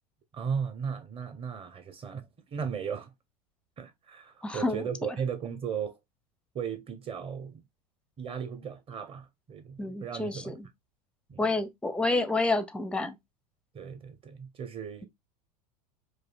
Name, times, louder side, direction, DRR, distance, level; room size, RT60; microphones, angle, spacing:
voice 1, 0.3-3.1 3.8-6.0 6.5-7.6 8.2-10.6 11.3-11.5 13.7-15.1, right 7 dB, 25° right, 0.9 m, -36 dB
voice 2, 4.4-4.8 9.8-10.7 11.4-13.2, left 2 dB, 5° left, 0.5 m, -29 dB
4.9 x 2.4 x 2.3 m
hypercardioid pair, 85°, 21 cm